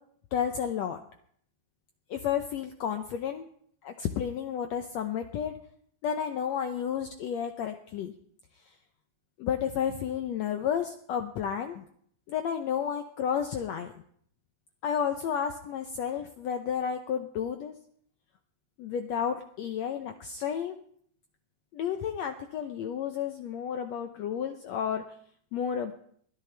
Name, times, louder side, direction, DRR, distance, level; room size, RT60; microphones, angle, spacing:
voice 1, 0.3-1.0 2.1-3.5 3.8-5.5 6.0-8.1 9.4-11.8 12.3-13.9 14.8-17.7 18.8-20.7 21.7-25.0 25.5-25.9, left 8 dB, 75° left, 6 dB, 1.5 m, -31 dB
21.0 x 13.0 x 3.4 m, 0.63 s
omnidirectional pair, 3.9 m